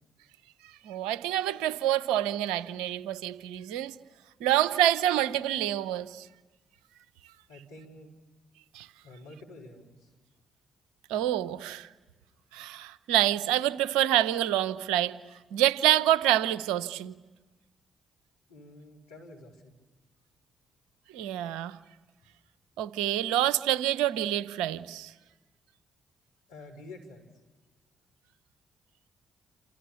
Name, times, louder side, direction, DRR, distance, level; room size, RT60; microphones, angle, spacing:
voice 1, 0.8-3.9 4.4-6.3 8.7-8.9 11.1-11.9 12.5-15.2 15.5-17.1 21.1-21.8 22.8-25.1, right 12 dB, 80° right, 0.8 m, -27 dB
voice 2, 7.5-8.1 9.0-10.1 18.5-19.7 26.5-27.3, left 2 dB, 90° left, 4.0 m, -48 dB
28.5 x 28.0 x 7.1 m
hypercardioid pair, 40°, 0 cm